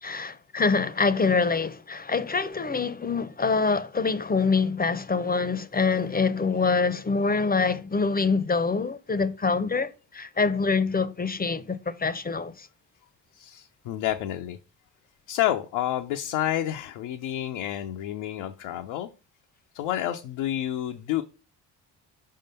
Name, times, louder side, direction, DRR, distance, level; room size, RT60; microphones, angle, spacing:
voice 1, 0.0-12.7, left 4 dB, 20° left, 0.5 m, -25 dB
voice 2, 13.3-14.6 15.3-19.1 19.7-21.2, left 12 dB, 80° left, 0.6 m, -29 dB
5.0 x 3.7 x 5.3 m
hypercardioid pair, 45°, 47 cm